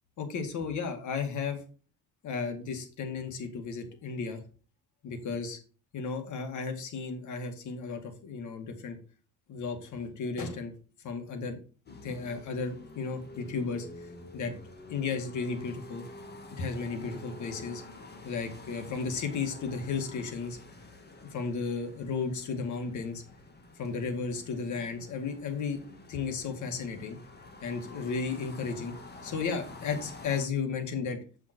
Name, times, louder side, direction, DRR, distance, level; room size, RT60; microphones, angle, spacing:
voice 1, 0.2-1.6 2.2-4.4 5.0-5.6 5.9-9.0 9.5-10.7 11.0-11.6 11.9-14.5 14.9-16.1 16.6-17.8 18.2-20.6 21.3-23.2 23.8-25.8 26.1-27.2 27.6-29.0 29.2-31.2, left 5 dB, 75° left, 5 dB, 2.1 m, -34 dB
sound 1, 11.9-30.5, left 2 dB, 35° left, 2.0 m, -48 dB
7.8 x 5.7 x 4.5 m, 0.37 s
cardioid pair, 90°, 30 cm